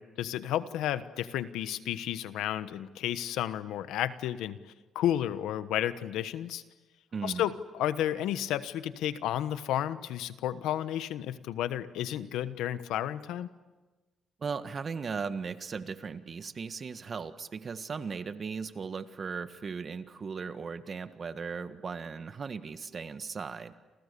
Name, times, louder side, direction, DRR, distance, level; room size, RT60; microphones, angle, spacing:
voice 1, 0.0-6.6 7.2-13.5, left 11 dB, 90° left, 13 dB, 1.2 m, -32 dB
voice 2, 7.1-7.4 14.4-23.7, right 5 dB, 40° right, 10 dB, 1.6 m, -37 dB
29.0 x 28.5 x 6.9 m, 1.2 s
cardioid pair, 90°, 0 cm